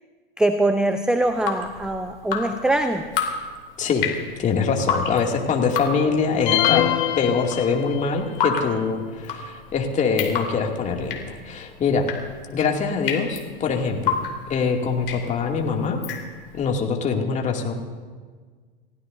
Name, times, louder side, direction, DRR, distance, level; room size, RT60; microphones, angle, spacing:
voice 1, 0.4-3.0, right 1 dB, ahead, 8 dB, 0.6 m, -22 dB
Drip, 1.2-16.7, left 6 dB, 65° left, 2.8 m, -31 dB
voice 2, 3.8-4.1 4.4-6.8 7.2-12.0 12.5-14.2 14.5-16.0 16.5-17.7, left 5 dB, 25° left, 1 dB, 2.5 m, -23 dB
sound 1, 6.5-8.3, left 13 dB, 50° left, 1.5 m, -23 dB
29.5 x 16.0 x 2.7 m, 1.5 s
figure-of-eight pair, 90°, 29 cm